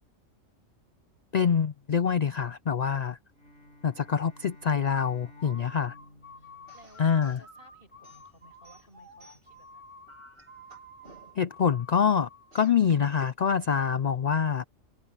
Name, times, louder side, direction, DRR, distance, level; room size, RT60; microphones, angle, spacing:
voice 1, 1.3-3.2 3.8-5.9 7.0-7.4 11.4-12.3 12.5-14.6, left 7 dB, 85° left, 0.3 m, -25 dB
Bowed string instrument, 3.3-7.7, left 1 dB, 60° left, 6.1 m, -54 dB
sound 1, 5.3-12.5, left 1 dB, 20° left, 3.0 m, -50 dB
voice 2, 5.5-9.9, equal, 40° left, 6.3 m, -58 dB
sound 2, 6.7-7.5 8.0-9.6 10.1-11.6 12.5-12.8, right 1 dB, 45° right, 2.9 m, -56 dB
omnidirectional pair, 1.4 m